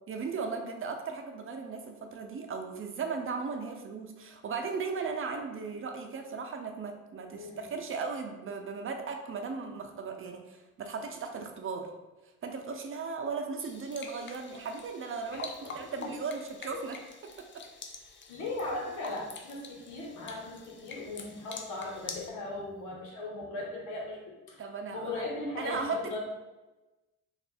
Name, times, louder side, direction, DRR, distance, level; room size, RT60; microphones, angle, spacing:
voice 1, 0.1-11.9 12.4-17.0 17.4-17.6 24.6-25.3 25.6-26.2, right 4 dB, 45° right, 5 dB, 0.6 m, -37 dB
voice 2, 7.3-7.7 15.3-16.1 16.7-16.8 18.3-24.6 24.9-26.2, left 2 dB, 90° left, -2 dB, 1.1 m, -38 dB
sound 1, 13.6-22.3, left 4 dB, 40° left, 0.5 m, -46 dB
3.4 x 2.5 x 4.2 m, 1.1 s
cardioid pair, 90°, 30 cm